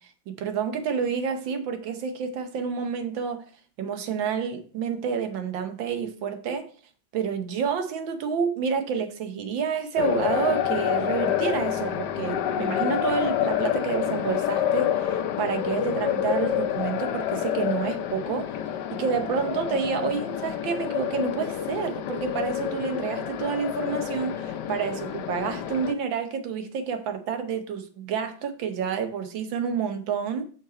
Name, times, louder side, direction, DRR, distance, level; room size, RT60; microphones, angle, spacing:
voice 1, 0.3-3.4 3.8-6.7 7.1-18.5 18.9-30.4, right 6 dB, 80° right, 7 dB, 1.7 m, -29 dB
sound 1, 10.0-25.9, left 10 dB, 70° left, 1.2 m, -28 dB
6.4 x 5.6 x 4.2 m, 0.43 s
omnidirectional pair, 2.1 m